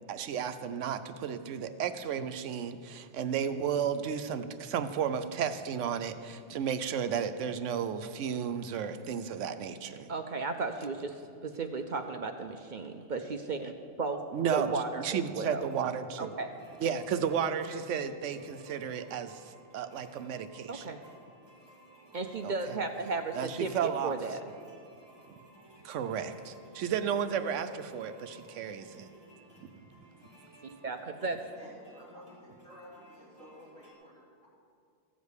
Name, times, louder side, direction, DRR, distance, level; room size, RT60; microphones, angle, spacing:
voice 1, 0.1-10.1 14.3-16.3 16.8-21.0 22.4-22.8 23.3-24.2 25.8-29.1 29.6-29.7, right 7 dB, 80° right, 10 dB, 1.0 m, -33 dB
voice 2, 10.1-13.7 14.0-14.2 14.5-15.6 16.2-16.5 20.7-21.0 22.1-24.4 30.8-31.4, right 3 dB, 50° right, 6 dB, 0.6 m, -35 dB
sound 1, 15.6-33.9, right 1 dB, 20° right, 1.9 m, -57 dB
voice 3, 31.5-34.5, equal, 5° left, -12 dB, 3.2 m, -53 dB
14.5 x 5.2 x 8.1 m, 2.3 s
omnidirectional pair, 1.3 m